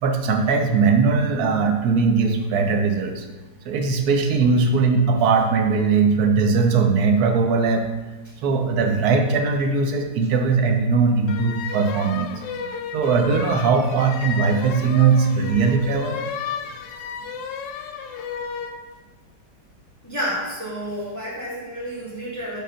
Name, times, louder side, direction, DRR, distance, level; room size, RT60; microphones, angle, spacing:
voice 1, 0.0-3.2 3.7-7.9 8.4-12.4 12.9-16.2, right 4 dB, 65° right, 5 dB, 1.1 m, -20 dB
sound 1, 11.3-18.8, left 7 dB, 90° left, 1.3 m, -32 dB
voice 2, 20.0-22.6, equal, 10° left, -8 dB, 1.3 m, -30 dB
5.1 x 3.8 x 5.6 m, 1.2 s
omnidirectional pair, 1.9 m